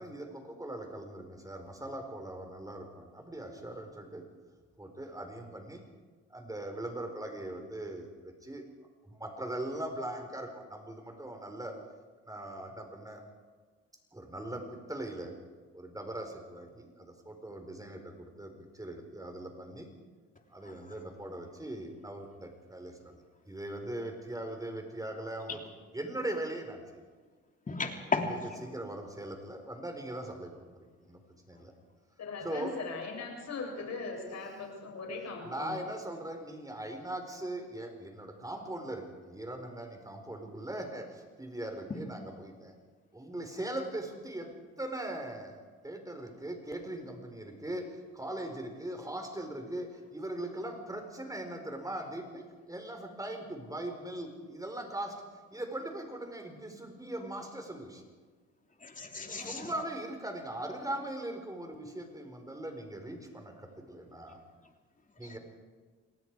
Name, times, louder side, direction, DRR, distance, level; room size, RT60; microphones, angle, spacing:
voice 1, 0.0-4.2 4.8-5.8 6.3-8.7 9.0-11.8 12.2-13.2 14.1-15.3 15.7-19.9 20.5-25.6 25.9-26.8 28.3-31.2 31.5-31.7 32.4-32.7 35.4-42.7 43.1-55.2 55.5-58.0 59.3-64.4 65.2-65.4, right 1 dB, 10° right, 4 dB, 4.6 m, -40 dB
voice 2, 27.7-28.6 58.8-59.7 65.2-65.4, left 3 dB, 25° left, 3 dB, 2.9 m, -34 dB
voice 3, 32.2-35.8, left 4 dB, 60° left, 1 dB, 7.3 m, -39 dB
28.0 x 19.0 x 4.9 m, 1.5 s
cardioid pair, 90°, 30 cm